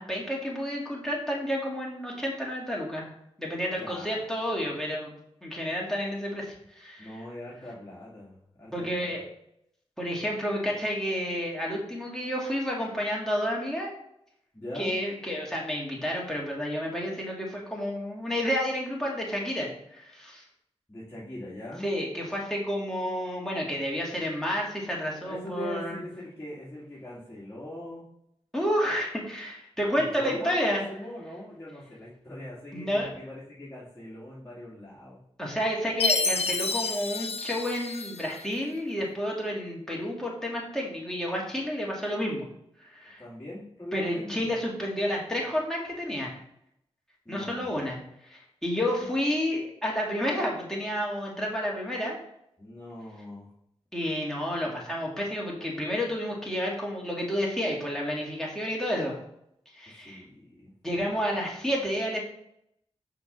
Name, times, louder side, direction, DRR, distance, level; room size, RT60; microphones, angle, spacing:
voice 1, 0.0-3.1 3.4-7.2 8.7-9.2 10.0-13.9 14.7-20.4 21.8-26.0 28.5-30.8 32.7-33.1 35.4-42.5 42.9-43.2 43.9-46.4 47.3-48.0 48.2-52.2 53.9-59.2 59.7-60.2 60.8-62.3, equal, 5° left, -3 dB, 2.5 m, -30 dB
voice 2, 3.8-4.8 7.0-9.1 14.5-15.0 20.9-21.9 25.2-28.0 29.8-35.2 43.2-44.4 47.2-47.9 49.0-49.1 52.6-53.5 60.0-60.7, left 1 dB, 20° left, -9 dB, 2.6 m, -41 dB
Chime, 36.0-38.4, left 4 dB, 60° left, 0.7 m, -29 dB
5.7 x 3.9 x 5.4 m, 0.75 s
cardioid pair, 45°, 11 cm